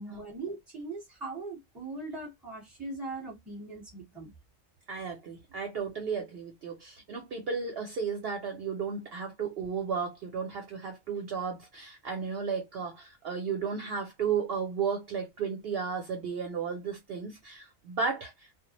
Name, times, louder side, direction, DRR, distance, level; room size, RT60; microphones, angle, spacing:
voice 1, 0.0-4.3, right 3 dB, ahead, 0.8 m, -40 dB
voice 2, 4.9-18.7, right 6 dB, 60° right, 0.7 m, -34 dB
2.2 x 2.0 x 2.9 m
omnidirectional pair, 1.3 m